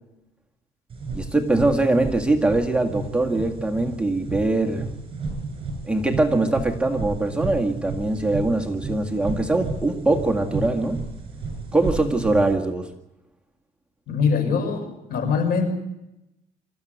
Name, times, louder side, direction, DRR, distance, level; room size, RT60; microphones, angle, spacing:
sound 1, 0.9-12.5, right 3 dB, 35° right, 7.6 m, -33 dB
voice 1, 1.1-4.9 5.9-11.0 11.7-12.9, right 2 dB, 5° right, 1 dB, 2.0 m, -22 dB
voice 2, 14.1-15.7, left 5 dB, 70° left, 6 dB, 5.9 m, -23 dB
25.5 x 14.5 x 8.1 m, 0.88 s
cardioid pair, 120°, 16 cm